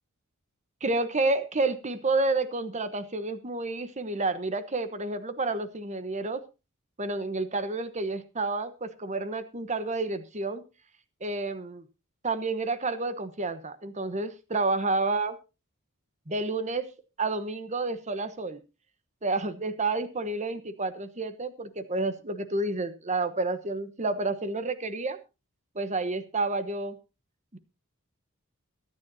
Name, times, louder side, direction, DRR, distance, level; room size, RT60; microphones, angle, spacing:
voice 1, 0.8-6.4 7.0-10.6 11.2-11.8 12.2-15.4 16.3-16.9 17.2-18.6 19.2-25.2 25.7-27.0 27.5-27.6, right 3 dB, 30° right, 12 dB, 1.1 m, -30 dB
22.5 x 9.7 x 2.8 m, 0.29 s
head